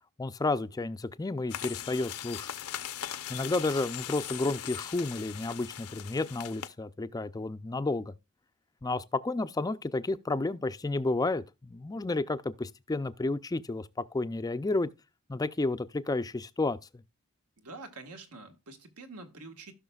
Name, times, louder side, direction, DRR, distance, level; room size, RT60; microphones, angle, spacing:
voice 1, 0.2-2.5 3.3-8.1 8.8-14.9 15.3-16.8, left 2 dB, 15° left, 0.4 m, -31 dB
sound 1, 1.5-6.7, left 10 dB, 80° left, 0.7 m, -40 dB
voice 2, 17.6-19.7, right 3 dB, 90° right, 1.6 m, -46 dB
16.5 x 5.7 x 2.3 m
head